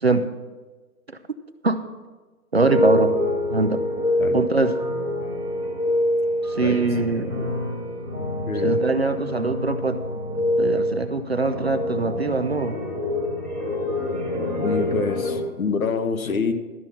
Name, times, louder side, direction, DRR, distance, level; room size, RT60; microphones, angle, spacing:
sound 1, 2.5-15.4, left 1 dB, 10° left, 0.9 m, -26 dB
voice 1, 2.5-3.2 3.5-3.8 4.3-4.8 6.4-7.4 8.6-10.0 10.6-12.8, right 3 dB, 45° right, 9 dB, 0.5 m, -22 dB
voice 2, 14.6-16.5, left 5 dB, 65° left, 9 dB, 1.1 m, -26 dB
12.5 x 5.8 x 6.9 m, 1.3 s
hypercardioid pair, 175°, 45 cm